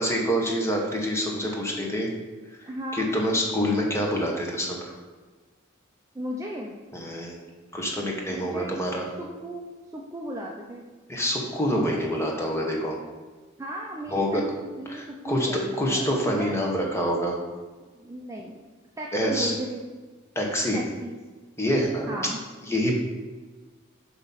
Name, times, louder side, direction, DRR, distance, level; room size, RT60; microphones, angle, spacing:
voice 1, 0.0-2.1 2.9-4.9 6.9-7.4 7.7-9.0 11.1-13.0 14.1-14.4 14.9-17.4 19.1-19.5 20.3-20.8 21.6-22.2 22.7-22.9, equal, 15° left, -1 dB, 1.1 m, -26 dB
voice 2, 2.6-3.1 6.1-6.7 8.3-8.8 9.2-9.6 9.9-10.9 13.6-16.6 17.9-18.6 19.0-19.8 20.7-21.1 22.1-22.4, right 1 dB, 15° right, -1 dB, 0.5 m, -35 dB
7.8 x 3.0 x 5.5 m, 1.4 s
head